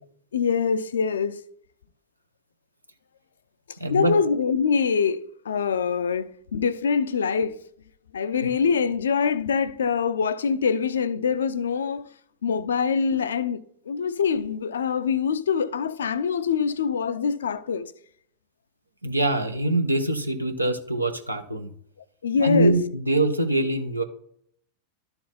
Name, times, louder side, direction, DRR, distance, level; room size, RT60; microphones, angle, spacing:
voice 1, 0.3-1.4 3.9-7.6 8.1-12.1 12.4-17.9 22.2-22.7, left 6 dB, 65° left, 0.5 m, -24 dB
voice 2, 3.8-4.1 8.4-8.5 19.0-21.7 22.4-24.0, right 1 dB, 85° right, 0.9 m, -24 dB
12.5 x 4.4 x 4.0 m
figure-of-eight pair, 90°, 0 cm